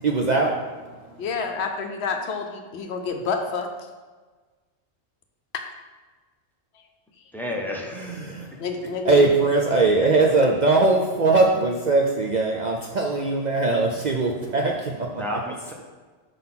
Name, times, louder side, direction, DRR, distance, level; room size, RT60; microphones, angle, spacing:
voice 1, 0.0-0.6 8.0-8.5 9.1-15.1, right 3 dB, 60° right, 0 dB, 0.4 m, -20 dB
voice 2, 1.2-3.7 8.6-9.5, left 4 dB, 65° left, 4 dB, 0.8 m, -29 dB
voice 3, 7.3-8.2 13.8-14.1 14.6-14.7 15.1-15.7, left 1 dB, ahead, 0 dB, 0.5 m, -32 dB
5.3 x 3.8 x 5.8 m, 1.4 s
omnidirectional pair, 1.3 m